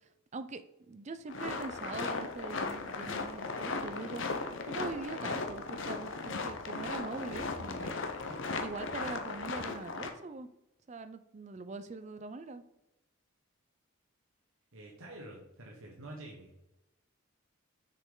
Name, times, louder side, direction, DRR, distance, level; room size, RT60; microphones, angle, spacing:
voice 1, 0.3-8.0 8.6-10.5 10.9-12.6, right 3 dB, 35° right, 11 dB, 0.4 m, -43 dB
sound 1, 1.3-10.1, left 3 dB, 60° left, 0.7 m, -37 dB
voice 2, 8.0-8.3 14.7-16.5, right 1 dB, 80° right, -1 dB, 1.2 m, -48 dB
6.6 x 5.2 x 3.8 m, 0.92 s
head